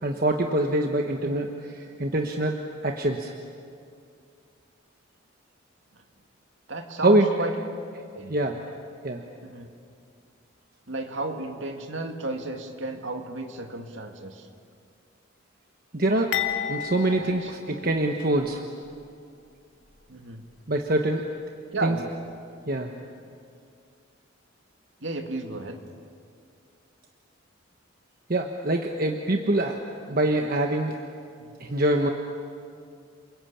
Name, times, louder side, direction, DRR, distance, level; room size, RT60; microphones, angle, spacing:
voice 1, 0.0-1.5 2.0-3.3 7.0-7.3 8.3-8.6 9.0-9.2 15.9-16.4 16.7-18.6 20.7-21.2 21.8-22.0 22.7-22.9 28.3-29.8 30.1-31.0 31.6-32.1, right 1 dB, 45° right, 3 dB, 1.2 m, -24 dB
voice 2, 6.7-7.5 7.9-8.3 9.4-9.7 10.9-14.5 17.2-17.5 17.8-18.0 20.1-20.4 21.7-22.2 22.6-23.0 25.0-25.8 31.4-31.5, right 2 dB, 65° right, 4 dB, 2.2 m, -34 dB
sound 1, 16.3-18.5 18.8-19.0 19.9-20.0, left 9 dB, 65° left, 2.1 m, -32 dB
29.5 x 21.5 x 8.7 m, 2.4 s
head